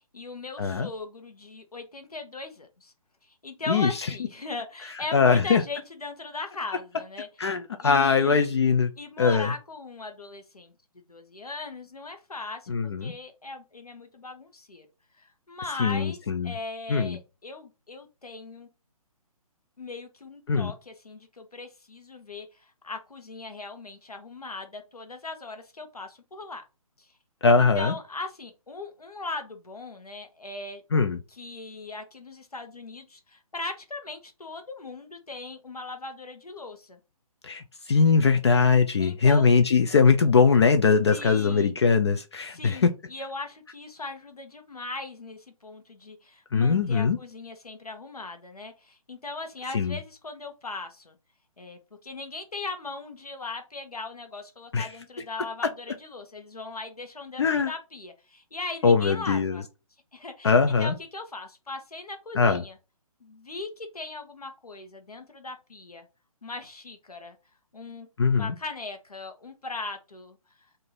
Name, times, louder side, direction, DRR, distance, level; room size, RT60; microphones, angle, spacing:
voice 1, 0.0-2.9 3.2-7.3 7.8-8.5 9.0-10.7 11.1-12.7 13.0-14.9 15.2-16.2 16.4-18.7 19.8-26.6 27.0-27.1 27.6-30.8 31.3-37.0 39.0-39.5 41.1-41.7 42.5-51.2 51.6-59.6 60.1-62.8 63.2-66.1 66.4-67.4 67.7-68.1 68.3-70.4, left 3 dB, 75° left, 1.1 m, -39 dB
voice 2, 0.6-0.9 3.7-4.1 5.1-5.6 7.4-8.9 9.2-9.5 12.7-13.1 15.8-16.5 16.9-17.2 20.5-20.7 27.4-28.0 30.9-31.2 37.4-42.9 46.5-47.2 49.7-50.0 54.7-54.9 57.4-57.7 58.8-59.6 60.4-60.9 62.3-62.6 68.2-68.5, left 5 dB, 45° left, 0.4 m, -21 dB
3.8 x 2.6 x 4.3 m
figure-of-eight pair, 135°, 19 cm